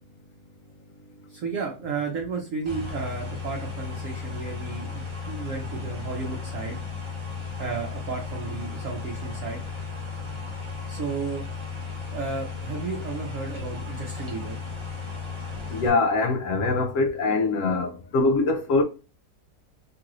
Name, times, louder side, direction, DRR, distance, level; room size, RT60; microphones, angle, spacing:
voice 1, 1.3-6.8 7.6-9.6 10.9-11.4 12.1-14.6, right 4 dB, 60° right, 1.0 m, -33 dB
sound 1, 2.7-15.9, left 5 dB, 30° right, 0.6 m, -35 dB
voice 2, 15.7-18.8, left 3 dB, 70° left, 0.8 m, -23 dB
3.0 x 2.5 x 2.9 m
omnidirectional pair, 1.8 m